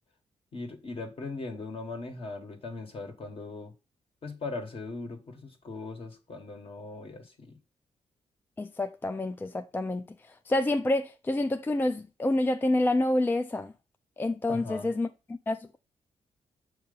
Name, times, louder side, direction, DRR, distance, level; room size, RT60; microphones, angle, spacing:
voice 1, 0.5-3.7 4.2-7.6 14.5-14.9, left 3 dB, 50° left, 1.5 m, -39 dB
voice 2, 8.6-10.1 10.5-13.7 14.2-15.1 15.5-15.8, left 1 dB, 15° left, 0.3 m, -28 dB
6.6 x 3.0 x 5.4 m
cardioid pair, 100°, 12 cm